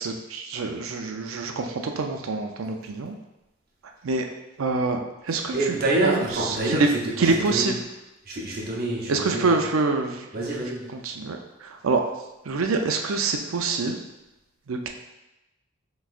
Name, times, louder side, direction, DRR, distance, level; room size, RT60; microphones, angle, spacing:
voice 1, 0.0-3.1 4.0-4.2 4.6-5.0 5.2-5.5 6.0-6.2 6.7-6.9 7.2-7.8 9.1-10.3 11.0-12.0 12.5-14.0 14.7-14.9, right 3 dB, 85° right, 4 dB, 0.5 m, -25 dB
voice 2, 5.3-7.7 8.2-9.6 10.3-11.0, right 2 dB, 50° right, -3 dB, 0.9 m, -27 dB
5.8 x 3.1 x 2.5 m, 0.98 s
head